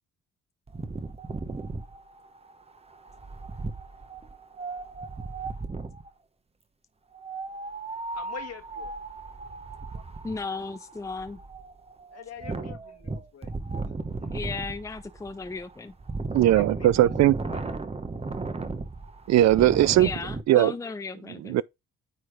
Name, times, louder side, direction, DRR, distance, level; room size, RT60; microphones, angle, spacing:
Wind, 0.7-6.1 7.1-20.4, right 3 dB, 20° right, 1.0 m, -36 dB
voice 1, 8.1-8.9 12.1-13.5 13.8-14.7 16.5-17.7 20.8-20.9, left 7 dB, 55° left, 1.7 m, -46 dB
voice 2, 10.2-11.4 14.3-15.9 20.0-21.6, left 4 dB, 10° left, 0.6 m, -35 dB
voice 3, 16.3-17.3 19.3-20.1 20.5-20.7 21.4-21.6, right 13 dB, 60° right, 0.4 m, -19 dB
9.4 x 3.2 x 4.9 m
cardioid pair, 90°, 30 cm